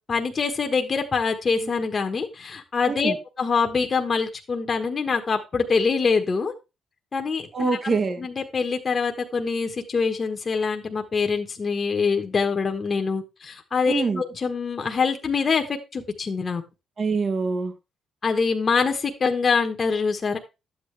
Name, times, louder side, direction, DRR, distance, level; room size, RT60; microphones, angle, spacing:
voice 1, 0.1-6.5 7.1-16.6 18.2-20.4, left 5 dB, 40° left, 1.4 m, -25 dB
voice 2, 7.5-8.3 13.9-14.2 17.0-17.7, right 4 dB, 45° right, 1.4 m, -25 dB
11.5 x 8.4 x 3.4 m
cardioid pair, 90°, 0 cm